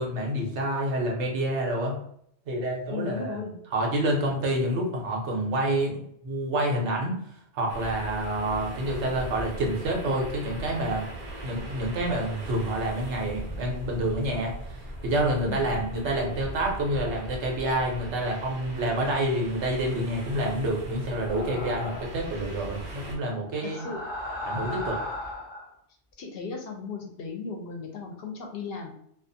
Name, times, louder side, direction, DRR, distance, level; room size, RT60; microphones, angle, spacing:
voice 1, 0.0-2.0 2.5-3.4 3.7-5.9 6.2-7.2 7.5-11.1 11.4-23.9 24.4-25.0, right 1 dB, 80° right, 0 dB, 1.0 m, -28 dB
voice 2, 2.9-3.6 15.5-15.8 23.6-24.0 26.2-28.9, left 5 dB, 65° left, 1 dB, 0.7 m, -36 dB
sound 1, 7.7-23.2, right 1 dB, 55° right, 0.8 m, -39 dB
sound 2, 21.1-22.3 23.5-25.7, left 1 dB, 5° right, 0.6 m, -36 dB
2.4 x 2.4 x 2.6 m, 0.70 s
omnidirectional pair, 1.2 m